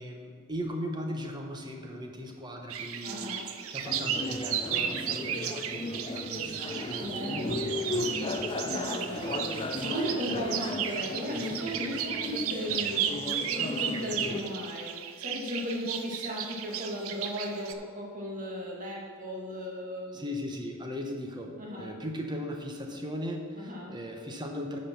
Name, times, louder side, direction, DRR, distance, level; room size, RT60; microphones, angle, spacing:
voice 1, 0.0-8.3 20.1-24.8, equal, 20° right, 3 dB, 0.9 m, -38 dB
sound 1, 2.7-17.7, right 8 dB, 70° right, 0.6 m, -34 dB
voice 2, 3.0-3.5 6.7-8.0 8.6-13.1 13.5-20.2 21.6-22.0 23.6-24.0, equal, 35° right, -3 dB, 1.8 m, -36 dB
sound 2, 3.8-14.4, left 2 dB, 25° left, 0.5 m, -36 dB
9.7 x 5.3 x 5.9 m, 2.1 s
head